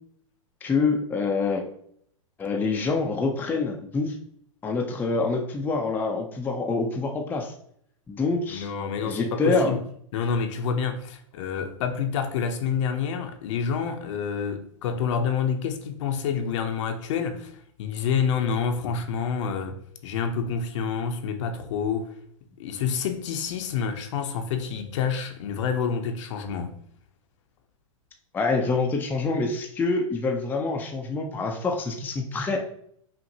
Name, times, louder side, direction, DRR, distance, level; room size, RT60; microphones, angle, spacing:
voice 1, 0.6-1.6 2.4-4.1 4.6-7.5 8.1-8.7 9.0-9.7 28.3-32.6, left 3 dB, 10° left, 0.4 m, -26 dB
voice 2, 8.5-9.8 10.1-17.5 17.8-19.8 20.0-22.1 22.6-26.8, left 6 dB, 60° left, 0.7 m, -28 dB
5.7 x 2.5 x 2.7 m
hypercardioid pair, 120°, 18 cm